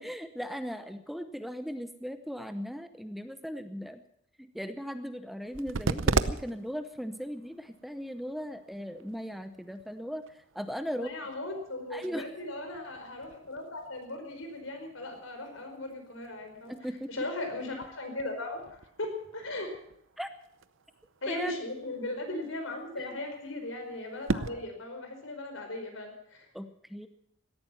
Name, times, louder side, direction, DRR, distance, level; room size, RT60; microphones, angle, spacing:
voice 1, 0.0-4.0 4.4-11.1 11.9-12.3 16.7-17.1 20.2-20.3 21.3-21.6 23.0-23.1 26.5-27.1, equal, ahead, 9 dB, 0.8 m, -38 dB
sound 1, 5.4-24.5, right 3 dB, 70° right, 0.7 m, -39 dB
voice 2, 10.9-16.7 17.1-19.7 21.2-26.5, left 2 dB, 75° left, 5 dB, 4.9 m, -38 dB
18.0 x 13.5 x 5.8 m, 0.72 s
head